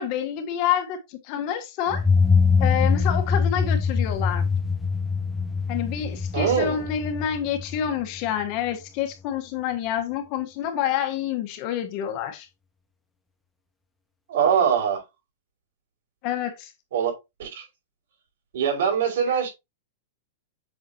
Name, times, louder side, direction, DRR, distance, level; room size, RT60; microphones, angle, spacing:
voice 1, 0.0-2.0 2.6-4.4 5.7-12.5 16.2-16.7 19.3-19.4, left 9 dB, 35° left, 1.2 m, -28 dB
sound 1, 1.9-8.5, left 5 dB, 5° left, 0.6 m, -23 dB
voice 2, 6.3-6.8 14.3-15.0 16.9-17.1 17.4-17.6 18.5-19.5, right 7 dB, 65° right, 5.2 m, -22 dB
7.9 x 6.0 x 2.8 m
supercardioid pair, 170°, 0 cm